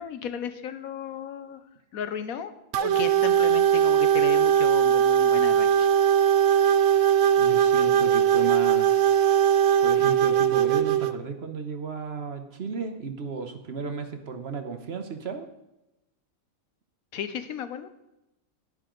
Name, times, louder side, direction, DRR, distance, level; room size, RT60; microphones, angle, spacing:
voice 1, 0.0-1.6 1.9-5.9 17.1-17.9, left 8 dB, 85° left, 11 dB, 1.3 m, -35 dB
sound 1, 2.7-11.1, right 9 dB, 70° right, 0.9 m, -20 dB
voice 2, 7.4-9.4 9.8-15.5, right 5 dB, 50° right, 7 dB, 1.2 m, -34 dB
11.0 x 10.5 x 3.9 m, 0.91 s
omnidirectional pair, 1.5 m